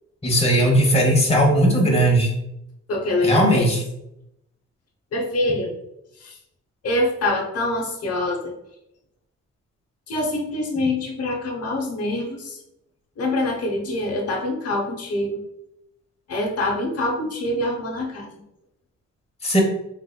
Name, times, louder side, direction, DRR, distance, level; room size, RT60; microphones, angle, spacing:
voice 1, 0.2-2.3 3.2-3.8 19.4-19.6, right 1 dB, 20° left, 0 dB, 1.0 m, -18 dB
voice 2, 2.9-3.7 5.1-5.7 6.2-6.3 6.8-8.5 10.1-12.6 13.2-15.4 16.3-18.3, left 1 dB, 55° left, 0 dB, 0.9 m, -25 dB
3.9 x 3.4 x 2.2 m, 0.82 s
cardioid pair, 85°, 29 cm